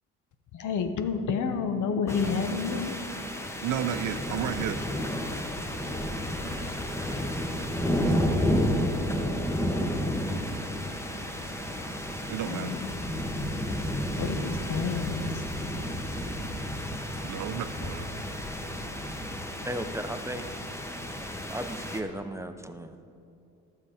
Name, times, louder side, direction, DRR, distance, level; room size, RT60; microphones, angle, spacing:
voice 1, 0.5-3.0 12.5-12.9 14.2-15.4, left 5 dB, 60° left, 8 dB, 1.0 m, -29 dB
sound 1, 2.1-22.0, equal, 10° left, 1.0 m, -31 dB
voice 2, 3.6-4.8 8.0-8.3 12.3-12.7 17.2-18.1, right 9 dB, 60° right, 10 dB, 0.7 m, -32 dB
voice 3, 19.6-20.5 21.1-21.2 21.5-23.0, right 1 dB, 10° right, 8 dB, 0.6 m, -35 dB
12.0 x 7.4 x 4.9 m, 2.6 s
supercardioid pair, 75°, 34 cm